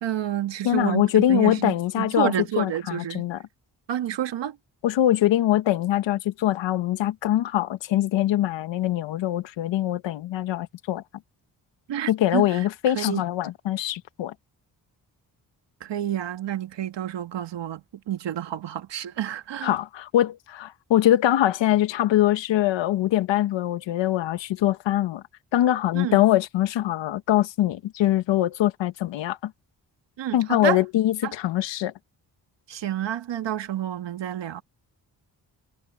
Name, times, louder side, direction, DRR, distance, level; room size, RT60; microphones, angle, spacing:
voice 1, 0.0-3.3 3.9-4.6 11.9-12.6 13.0-13.2 15.8-19.7 25.9-26.2 30.2-30.8 31.2-31.3 32.7-34.6, right 11 dB, 75° right, 2.0 m, -29 dB
voice 2, 0.6-3.4 4.8-11.0 12.1-14.3 19.6-25.2 25.5-29.5 30.3-31.9, left 13 dB, 90° left, 1.4 m, -23 dB
supercardioid pair, 55°, 43 cm